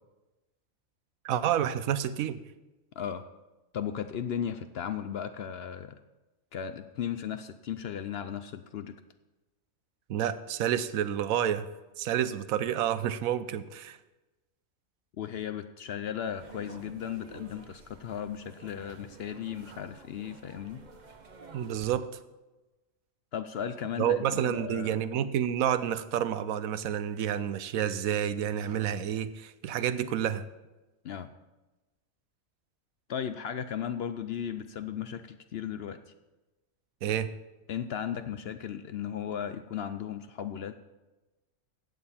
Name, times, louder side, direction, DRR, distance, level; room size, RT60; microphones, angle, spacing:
voice 1, 1.2-2.4 10.1-11.7 12.0-14.0 21.5-22.1 24.0-30.4 37.0-37.3, right 10 dB, 85° right, 14 dB, 1.1 m, -29 dB
voice 2, 3.7-6.0 6.5-8.9 15.2-20.8 23.3-25.0 31.0-31.3 33.1-36.0 37.7-40.7, left 8 dB, 60° left, 10 dB, 0.7 m, -36 dB
sound 1, 16.3-21.9, right 4 dB, 35° right, 0.9 m, -51 dB
14.5 x 8.8 x 4.3 m, 1.1 s
omnidirectional pair, 1.4 m